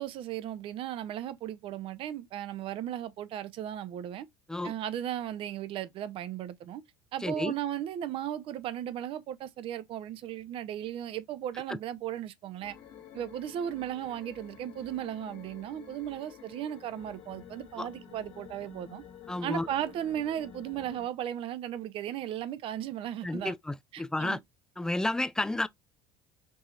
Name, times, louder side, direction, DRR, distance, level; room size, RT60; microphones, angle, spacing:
voice 1, 0.0-4.3 4.6-6.8 7.1-12.8 13.1-19.0 19.4-23.5 23.9-24.4, right 11 dB, 55° right, 0.6 m, -36 dB
voice 2, 7.2-7.5 11.7-11.8 17.8-17.9 19.3-19.7 23.2-24.4 24.8-25.7, left 2 dB, 5° left, 0.3 m, -31 dB
sound 1, 12.6-21.1, left 8 dB, 60° left, 1.2 m, -50 dB
4.6 x 2.8 x 2.4 m
hypercardioid pair, 85°, 11 cm